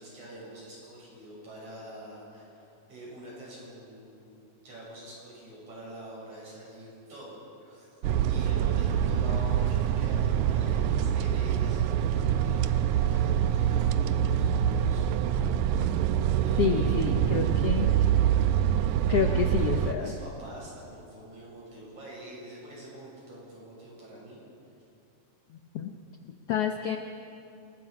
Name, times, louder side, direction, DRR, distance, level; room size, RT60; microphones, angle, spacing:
voice 1, 0.0-8.0 8.3-15.0 16.4-17.4 19.1-24.4, right 1 dB, 55° right, -5 dB, 8.1 m, -45 dB
sound 1, 8.0-19.9, right 10 dB, 75° right, 1.9 m, -25 dB
voice 2, 16.6-17.9 19.1-20.2 25.5-25.9 26.2-27.0, left 8 dB, 90° left, 4 dB, 1.3 m, -29 dB
28.0 x 20.0 x 5.0 m, 2.7 s
omnidirectional pair, 3.9 m